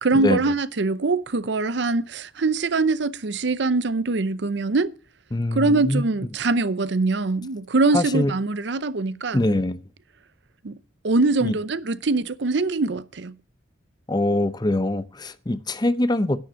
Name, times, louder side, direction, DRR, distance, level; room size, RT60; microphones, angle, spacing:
voice 1, 0.0-4.9 5.5-9.4 10.6-10.8 11.0-13.3, right 3 dB, 60° right, 0.6 m, -23 dB
voice 2, 5.3-6.0 7.9-8.3 9.3-9.8 11.4-11.6 14.1-16.4, left 1 dB, 20° left, 0.6 m, -23 dB
10.5 x 9.5 x 6.2 m
head